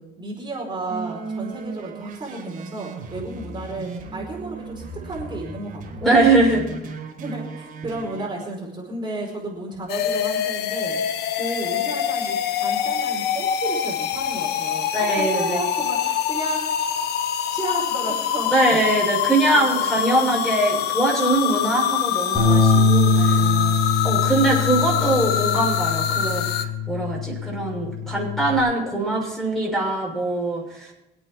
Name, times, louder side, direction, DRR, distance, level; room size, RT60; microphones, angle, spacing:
voice 1, 0.0-6.3 7.2-11.0 11.3-16.6 17.5-18.7 19.5-20.4 23.1-23.8, right 2 dB, 25° right, -3 dB, 4.8 m, -33 dB
sound 1, 0.9-8.3, right 3 dB, 55° right, 4.6 m, -36 dB
voice 2, 6.0-6.6 14.9-15.6 18.5-23.4 24.0-30.9, right 2 dB, ahead, -2 dB, 6.6 m, -22 dB
sound 2, 9.9-26.6, left 9 dB, 75° left, 1.1 m, -25 dB
Bass guitar, 22.3-28.6, left 4 dB, 25° left, 7.0 m, -22 dB
26.0 x 8.7 x 4.5 m, 0.91 s
cardioid pair, 110°, 17 cm